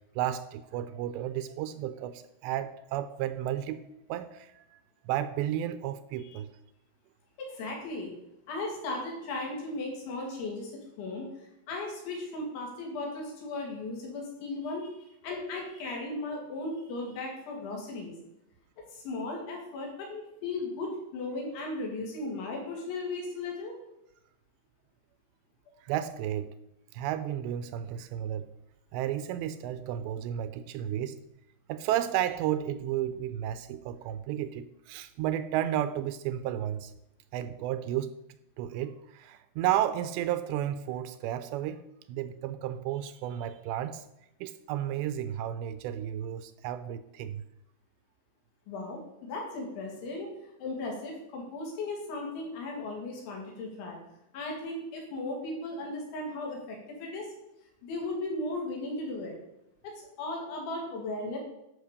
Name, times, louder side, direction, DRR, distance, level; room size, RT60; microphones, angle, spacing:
voice 1, 0.2-3.8 4.1-4.6 5.1-6.5 25.8-26.5 26.9-28.5 28.9-31.2 31.7-36.9 37.3-38.1 38.6-41.8 42.1-44.0 44.4-47.4, right 11 dB, 85° right, 12 dB, 2.6 m, -32 dB
voice 2, 7.4-8.1 8.5-18.2 18.9-23.8 48.7-50.3 50.6-54.0 54.3-57.3 57.8-59.4 59.8-59.9 60.2-61.4, left 2 dB, 80° left, 0 dB, 5.1 m, -36 dB
11.5 x 6.4 x 6.7 m, 0.87 s
omnidirectional pair, 5.3 m